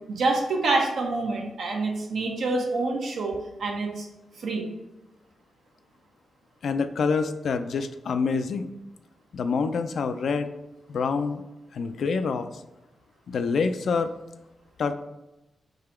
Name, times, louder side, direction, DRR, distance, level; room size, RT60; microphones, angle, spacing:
voice 1, 0.1-4.0 4.4-4.6, right 3 dB, 80° right, 1 dB, 0.9 m, -27 dB
voice 2, 6.6-8.7 9.3-10.5 10.9-11.4 11.7-12.5 13.3-14.1 14.8-15.0, left 5 dB, 70° left, 9 dB, 0.3 m, -26 dB
3.8 x 2.9 x 4.4 m, 0.97 s
cardioid pair, 95°, 0 cm